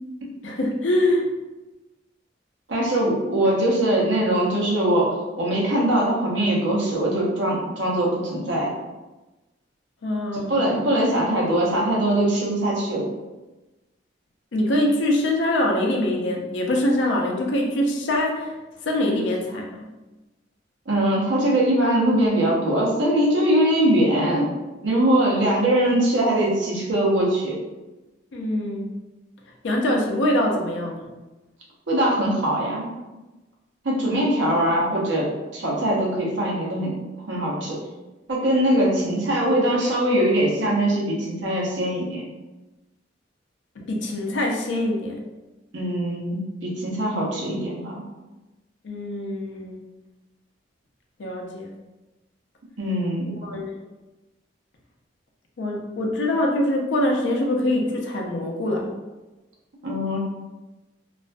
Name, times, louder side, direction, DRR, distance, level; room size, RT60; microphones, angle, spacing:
voice 1, 0.4-1.3 10.0-10.6 14.5-18.5 18.8-19.9 28.3-28.9 29.6-31.1 38.7-39.0 43.8-45.2 48.8-49.8 51.2-51.7 53.4-53.8 55.6-59.0, left 1 dB, 80° left, 0 dB, 0.5 m, -24 dB
voice 2, 2.7-8.7 10.5-13.1 20.9-24.5 24.8-27.6 31.9-32.9 33.8-36.9 37.3-37.8 38.3-42.2 45.7-48.0 52.8-53.4 59.8-60.2, right 1 dB, 90° right, -4 dB, 0.7 m, -22 dB
2.4 x 2.2 x 2.4 m, 1.1 s
head